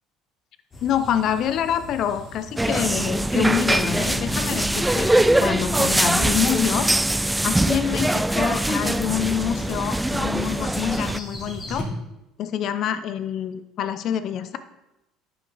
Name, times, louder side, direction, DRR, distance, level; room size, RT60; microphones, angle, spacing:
sound 1, 0.7-11.8, left 1 dB, 30° left, 3.3 m, -40 dB
voice 1, 0.8-6.9 7.4-11.9 12.4-14.6, left 9 dB, 60° left, 12 dB, 0.7 m, -26 dB
sound 2, 2.6-11.2, right 1 dB, 10° right, 0.3 m, -22 dB
10.5 x 6.1 x 4.0 m, 0.93 s
hypercardioid pair, 75°, 0 cm